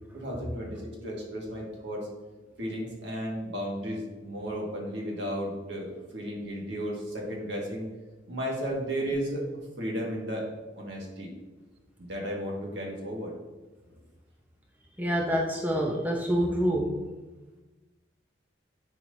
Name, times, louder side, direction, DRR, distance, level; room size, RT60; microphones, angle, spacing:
voice 1, 0.1-2.1 2.6-7.9 8.3-9.4 9.8-10.5 10.8-11.3 12.0-13.3, equal, 75° right, -2 dB, 1.8 m, -34 dB
voice 2, 15.0-16.9, equal, 10° right, -1 dB, 0.6 m, -26 dB
10.0 x 4.6 x 2.7 m, 1.2 s
head